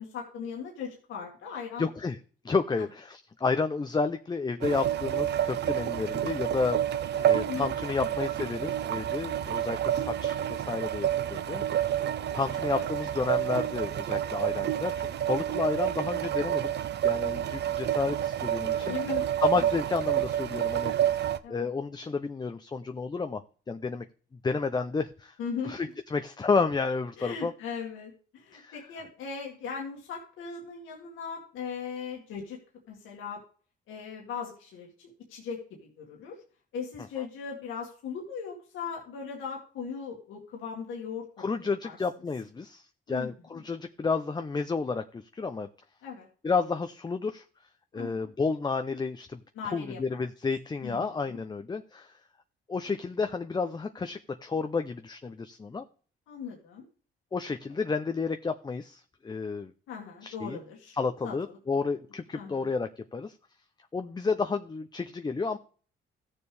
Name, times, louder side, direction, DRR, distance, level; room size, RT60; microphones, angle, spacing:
voice 1, 0.0-1.9 2.8-2.9 7.0-8.1 12.2-12.3 12.6-12.9 18.8-19.2 21.4-21.7 25.4-25.9 27.2-32.6 32.9-33.4 33.9-36.4 36.7-42.0 43.1-43.6 46.0-46.3 47.9-48.3 49.5-50.2 50.8-51.4 56.3-56.8 59.9-60.9 61.2-61.9 62.3-62.7, left 6 dB, 90° left, -2 dB, 2.1 m, -39 dB
voice 2, 1.8-2.2 2.4-11.9 12.3-16.7 17.0-18.9 19.4-23.4 23.7-24.0 24.4-25.3 25.6-27.5 28.5-28.8 41.4-45.7 46.4-47.4 47.9-49.4 49.7-52.1 52.7-55.8 57.3-59.7 60.2-60.6 60.9-63.4 63.9-65.6, left 4 dB, 20° left, 7 dB, 0.6 m, -31 dB
sound 1, 4.6-21.4, right 11 dB, 60° right, 0.7 m, -29 dB
14.5 x 6.9 x 3.4 m, 0.41 s
cardioid pair, 90°, 20 cm